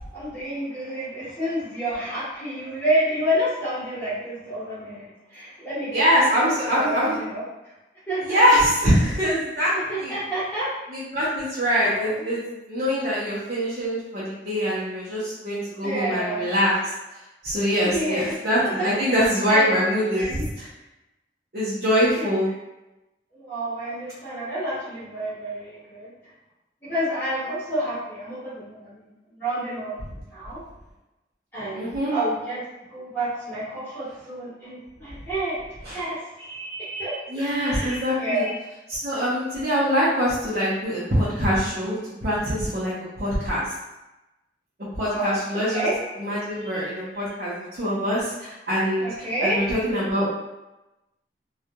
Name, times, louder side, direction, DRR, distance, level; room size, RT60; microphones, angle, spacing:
voice 1, 0.1-6.0 6.6-7.4 8.1-8.4 9.7-10.7 11.8-12.2 15.8-16.5 17.9-18.3 18.6-19.2 19.5-19.8 20.1-20.4 22.1-22.3 23.3-26.1 26.8-29.9 30.3-30.6 31.5-32.6 32.9-35.6 35.9-38.5 45.1-45.3 45.7-46.0 46.6-46.8 49.0-49.6, right 1 dB, 10° left, -13 dB, 1.4 m, -29 dB
voice 2, 5.9-7.2 8.2-10.2 10.9-16.9 17.4-20.7 21.5-22.5 31.7-32.1 35.8-36.0 37.3-38.4 38.9-43.7 45.0-45.8 46.2-49.0 49.4-50.3, equal, 55° right, -10 dB, 0.7 m, -23 dB
2.8 x 2.3 x 2.2 m, 0.98 s
head